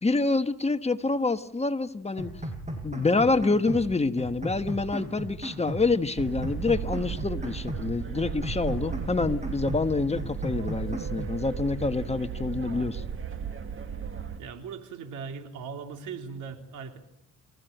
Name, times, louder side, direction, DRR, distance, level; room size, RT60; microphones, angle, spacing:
voice 1, 0.0-2.3 2.8-13.0, left 3 dB, 20° left, 10 dB, 1.3 m, -27 dB
sound 1, 2.2-3.9 4.2-5.9 6.2-7.9 8.2-9.9 10.2-11.4, right 1 dB, 25° right, 6.7 m, -37 dB
sound 2, 6.2-14.4, right 7 dB, 45° right, 2.1 m, -35 dB
voice 2, 14.4-17.0, right 6 dB, 85° right, 5 dB, 3.4 m, -39 dB
28.5 x 15.0 x 9.2 m, 0.72 s
cardioid pair, 90°, 30 cm